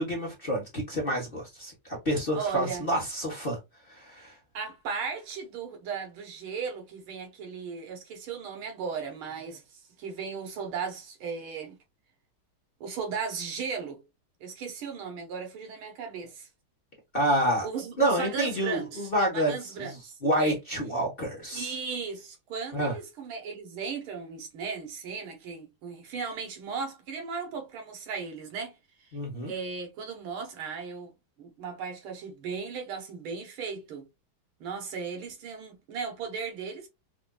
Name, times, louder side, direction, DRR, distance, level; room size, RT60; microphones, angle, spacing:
voice 1, 0.0-3.6 3.9-4.4 17.1-17.7 18.0-21.7 22.7-22.9 29.1-29.5, right 1 dB, 35° left, 1.0 m, -28 dB
voice 2, 2.4-2.9 4.5-11.8 12.8-14.0 14.4-16.5 17.6-20.5 21.5-28.8 29.4-31.1 31.4-34.1 34.6-36.9, right 5 dB, 80° right, 1.9 m, -36 dB
4.9 x 2.5 x 2.2 m
omnidirectional pair, 2.3 m